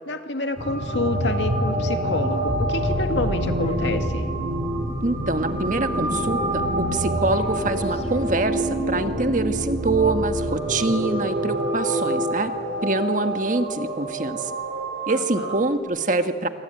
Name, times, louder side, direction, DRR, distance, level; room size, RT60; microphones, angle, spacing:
voice 1, 0.1-4.3 15.1-15.6, left 2 dB, 85° left, 6 dB, 2.1 m, -28 dB
sound 1, 0.6-15.8, right 1 dB, 65° right, 6.2 m, -27 dB
sound 2, 2.4-10.6, equal, 40° left, 2.9 m, -33 dB
voice 2, 5.0-12.5 12.8-14.5 15.1-16.5, right 2 dB, 45° right, 8 dB, 1.5 m, -25 dB
27.5 x 24.0 x 9.1 m, 2.3 s
head